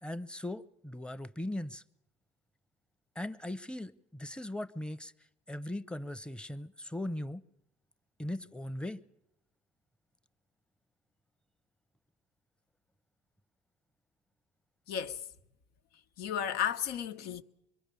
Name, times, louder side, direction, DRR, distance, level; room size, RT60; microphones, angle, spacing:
voice 1, 0.0-1.8 3.2-5.1 5.5-7.4 8.2-9.0, left 1 dB, 5° left, 0.8 m, -39 dB
voice 2, 14.9-15.3 16.2-17.4, left 9 dB, 80° left, 1.2 m, -33 dB
25.0 x 22.5 x 7.0 m
cardioid pair, 105°, 16 cm